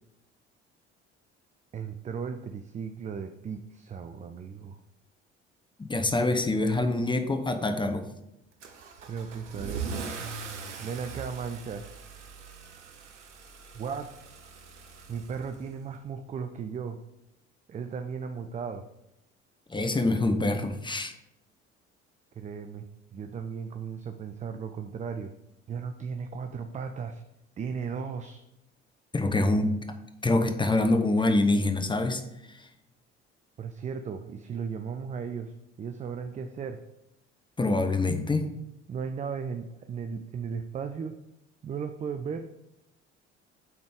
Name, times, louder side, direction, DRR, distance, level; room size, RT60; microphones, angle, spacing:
voice 1, 1.7-4.8 9.0-9.9 10.8-11.9 13.7-14.1 15.1-17.0 17.7-18.8 22.4-22.9 23.1-25.3 25.7-27.2 27.6-28.4 33.6-35.5 35.8-36.8 38.9-41.1 41.6-42.5, right 6 dB, 20° right, 7 dB, 0.4 m, -36 dB
voice 2, 5.8-8.1 19.7-21.1 29.1-29.8 30.2-32.2 37.6-38.5, left 2 dB, 15° left, 7 dB, 0.7 m, -25 dB
Car / Engine starting / Accelerating revving vroom, 8.6-16.0, right 5 dB, 80° right, 0.7 m, -41 dB
7.0 x 4.0 x 4.8 m, 0.86 s
figure-of-eight pair, 55°, 35 cm